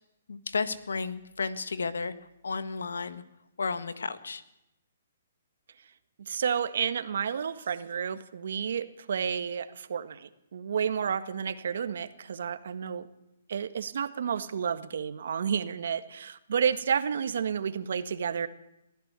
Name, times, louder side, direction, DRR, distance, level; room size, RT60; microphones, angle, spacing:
voice 1, 0.3-2.1 2.4-3.2 3.6-4.4, left 4 dB, 90° left, 14 dB, 1.7 m, -32 dB
voice 2, 6.2-13.1 13.5-18.5, right 7 dB, 70° right, 12 dB, 1.6 m, -31 dB
22.5 x 15.0 x 8.3 m, 0.88 s
hypercardioid pair, 150°, 0 cm